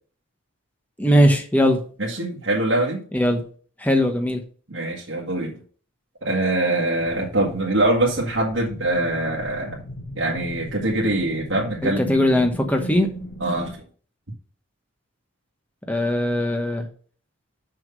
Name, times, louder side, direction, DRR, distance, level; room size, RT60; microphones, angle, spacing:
voice 1, 1.0-1.8 3.1-3.4 3.8-4.4 11.8-13.1 15.9-16.9, equal, 10° left, 4 dB, 1.1 m, -19 dB
voice 2, 2.0-3.0 4.7-5.6 6.2-9.8 10.1-12.1 13.4-13.8, right 1 dB, 70° right, -3 dB, 1.8 m, -23 dB
sound 1, 7.0-13.8, equal, 70° left, 2.8 m, -37 dB
6.3 x 5.8 x 5.4 m, 0.43 s
head